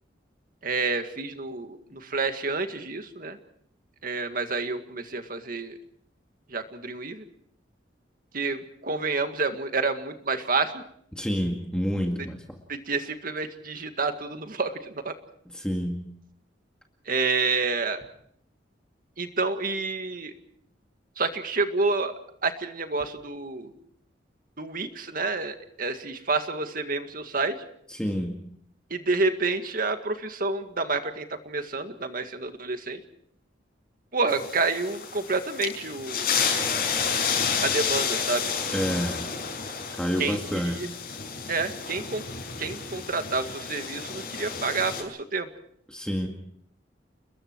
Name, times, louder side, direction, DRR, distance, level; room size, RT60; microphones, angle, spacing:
voice 1, 0.6-3.4 4.0-5.7 6.5-7.2 8.3-10.8 12.7-15.1 17.1-18.0 19.2-20.3 21.2-22.1 22.4-23.7 24.6-27.6 28.9-33.0 34.1-36.3 37.6-38.6 40.2-40.9 41.5-42.2 42.6-45.5, right 3 dB, 50° right, 7 dB, 2.0 m, -29 dB
voice 2, 11.1-12.6 15.5-16.1 27.9-28.4 38.7-39.3 40.0-40.9 45.9-46.3, equal, 5° left, 2 dB, 2.1 m, -28 dB
sound 1, 34.3-45.0, left 6 dB, 55° left, 5.7 m, -30 dB
30.0 x 21.0 x 4.7 m, 0.65 s
head